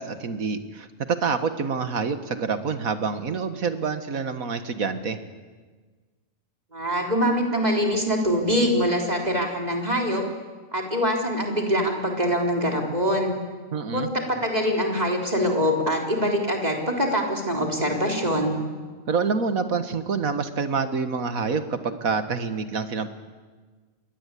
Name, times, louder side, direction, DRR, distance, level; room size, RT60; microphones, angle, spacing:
voice 1, 0.0-5.2 13.7-14.1 19.1-23.1, right 5 dB, 85° right, 9 dB, 2.0 m, -27 dB
voice 2, 6.7-10.2 10.7-13.3 13.9-18.6, equal, 30° right, 1 dB, 4.1 m, -24 dB
28.5 x 23.0 x 8.5 m, 1.4 s
omnidirectional pair, 1.4 m